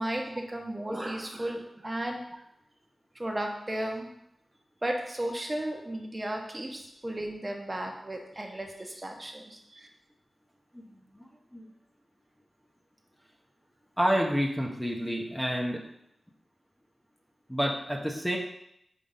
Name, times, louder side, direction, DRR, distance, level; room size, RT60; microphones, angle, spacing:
voice 1, 0.0-2.2 3.1-4.1 4.8-9.9, right 1 dB, 25° right, 2 dB, 0.9 m, -34 dB
voice 2, 14.0-15.8 17.5-18.4, equal, 5° left, -1 dB, 0.8 m, -28 dB
5.1 x 3.8 x 5.5 m, 0.76 s
wide cardioid pair, 95°, 0 cm